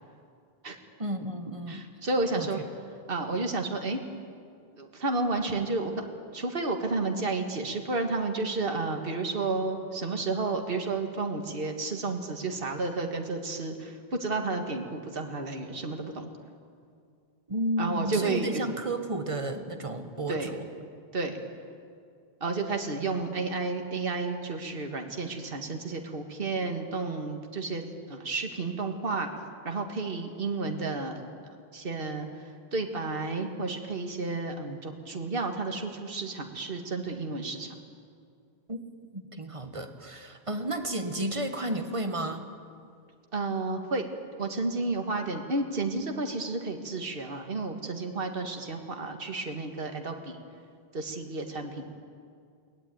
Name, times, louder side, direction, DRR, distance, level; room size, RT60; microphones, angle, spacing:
voice 1, 1.0-1.8 2.4-2.5 17.5-20.7 38.7-38.8 39.1-42.5, right 1 dB, 30° right, 6 dB, 1.7 m, -32 dB
voice 2, 1.7-2.6 3.1-4.0 4.7-5.9 6.3-16.3 17.8-18.6 20.3-20.6 21.1-21.4 22.4-29.3 29.6-37.8 43.3-44.1 44.4-50.4 50.9-51.8, right 3 dB, 65° right, 4 dB, 2.0 m, -31 dB
22.5 x 19.5 x 9.4 m, 2.3 s
omnidirectional pair, 1.0 m